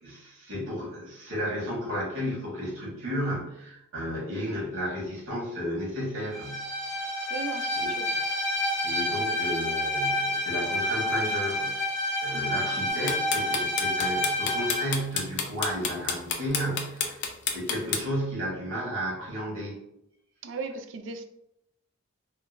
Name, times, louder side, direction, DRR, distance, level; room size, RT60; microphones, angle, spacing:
voice 1, 0.0-6.7 7.8-8.1 8.8-11.9 12.2-19.8, equal, 85° right, -6 dB, 1.4 m, -33 dB
Bowed string instrument, 6.3-14.9, left 1 dB, 30° right, 1.5 m, -29 dB
voice 2, 7.3-8.1 9.1-9.4 12.3-12.7 20.4-21.2, right 4 dB, 65° right, 5 dB, 0.3 m, -38 dB
sound 1, 12.9-18.0, left 6 dB, 55° left, 0.4 m, -29 dB
3.7 x 2.1 x 2.5 m, 0.80 s
head